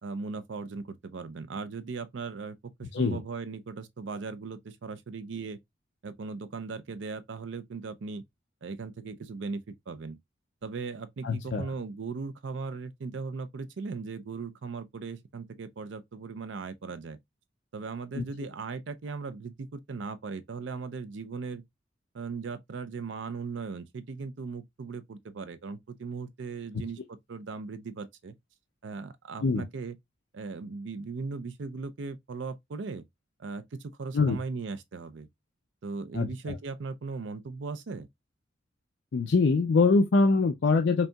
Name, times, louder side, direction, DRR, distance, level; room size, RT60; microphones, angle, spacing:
voice 1, 0.0-5.6 6.0-8.2 8.6-10.2 10.6-17.2 17.7-21.6 22.1-28.3 28.8-30.0 30.3-33.0 33.4-35.3 35.8-38.1, right 4 dB, 75° right, 0.5 m, -38 dB
voice 2, 11.2-11.7 18.1-18.2 29.4-29.6 34.1-34.4 36.1-36.5 39.1-41.1, left 4 dB, 65° left, 0.4 m, -24 dB
5.2 x 2.7 x 2.2 m
head